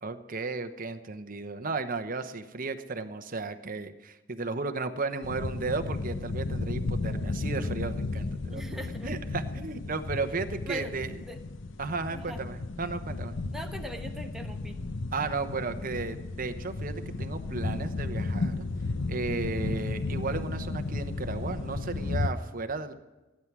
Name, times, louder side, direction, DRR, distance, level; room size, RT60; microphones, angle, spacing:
voice 1, 0.0-11.1 11.8-13.4 15.1-18.7 19.1-22.9, right 3 dB, 45° right, 9 dB, 0.9 m, -34 dB
sound 1, 5.2-22.3, left 3 dB, 75° left, 0.7 m, -34 dB
voice 2, 8.5-9.1 10.7-10.9 11.2-11.4 12.1-12.4 13.5-14.8, equal, ahead, 3 dB, 1.2 m, -40 dB
16.0 x 9.9 x 6.0 m, 1.1 s
head